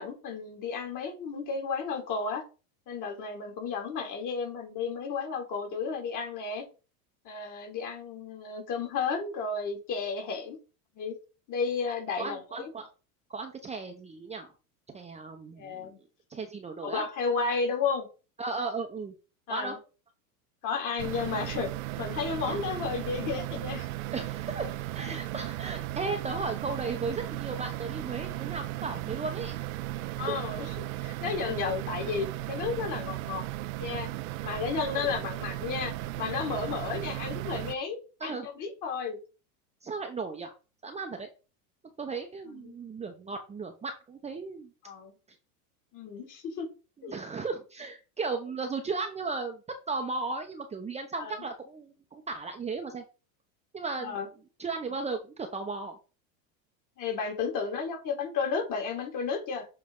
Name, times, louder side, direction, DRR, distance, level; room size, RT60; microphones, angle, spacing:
voice 1, 0.0-2.4 2.9-6.6 7.2-10.6 11.0-11.2 11.5-12.6 15.6-16.0 16.8-18.1 19.5-19.8 20.6-21.7 22.0-23.9 30.2-33.4 33.8-34.1 34.4-39.2 42.5-42.7 44.8-45.1 45.9-46.7 47.0-47.1 51.2-51.4 54.0-54.3 57.0-59.7, left 5 dB, 45° left, 2 dB, 2.6 m, -33 dB
voice 2, 12.2-12.9 13.3-14.5 14.9-15.9 16.3-17.0 18.4-19.1 19.5-19.7 22.5-22.6 24.1-29.6 30.2-30.3 35.0-35.2 38.2-38.5 39.8-40.5 40.8-41.3 42.0-44.7 47.0-49.6 49.9-53.0 53.7-54.2 54.6-56.0, right 4 dB, 15° right, 4 dB, 0.8 m, -35 dB
sound 1, 21.0-37.8, right 16 dB, 75° right, 0.7 m, -36 dB
7.5 x 3.3 x 3.8 m, 0.33 s
supercardioid pair, 115°, 43 cm